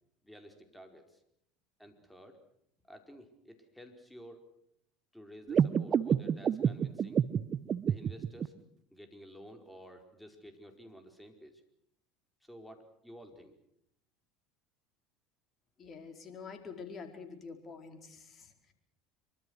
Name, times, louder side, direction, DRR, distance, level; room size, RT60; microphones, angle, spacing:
voice 1, 0.2-1.2 1.8-2.4 2.9-4.5 5.1-7.2 7.9-8.5 8.9-11.6 12.4-13.5, equal, 5° left, 5 dB, 4.7 m, -52 dB
sound 1, 5.5-8.5, right 8 dB, 35° right, 1.0 m, -29 dB
voice 2, 15.8-18.7, left 5 dB, 35° left, 6 dB, 4.6 m, -47 dB
25.5 x 24.0 x 6.5 m, 0.73 s
hypercardioid pair, 70°, 0 cm